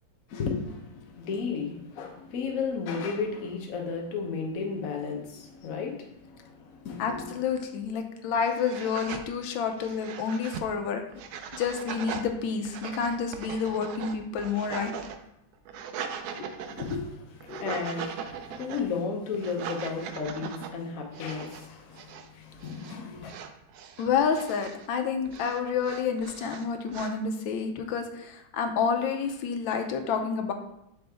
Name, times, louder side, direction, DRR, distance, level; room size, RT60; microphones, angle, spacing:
voice 1, 0.3-7.5 16.7-23.3, left 5 dB, 60° left, 1 dB, 0.9 m, -34 dB
voice 2, 7.0-11.0 11.5-14.9 16.4-16.5 17.5-17.8 24.0-30.5, left 6 dB, 75° left, 5 dB, 1.4 m, -29 dB
sound 1, 7.8-7.9 8.4-9.3 9.7-10.7 11.1-12.3 12.7-15.2 15.5-17.0 17.4-18.9 19.3-20.7 21.1-21.7 21.9-22.3 22.5-23.0 23.2-24.9 25.3-27.1, right 7 dB, 80° right, 0.8 m, -39 dB
6.4 x 4.4 x 3.4 m, 0.82 s
omnidirectional pair, 2.2 m